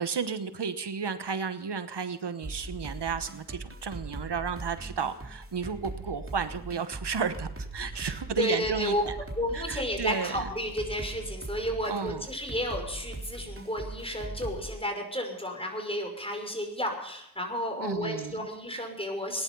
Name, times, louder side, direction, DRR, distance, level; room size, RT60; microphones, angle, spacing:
voice 1, 0.0-9.1 9.5-10.5 11.9-12.2 17.8-18.5, right 5 dB, 80° right, 11 dB, 1.2 m, -33 dB
sound 1, 2.4-14.7, right 2 dB, 30° right, 3.7 m, -40 dB
voice 2, 7.9-9.0 9.4-19.4, equal, 15° left, 3 dB, 5.6 m, -32 dB
19.0 x 11.0 x 5.5 m, 0.78 s
cardioid pair, 45°, 40 cm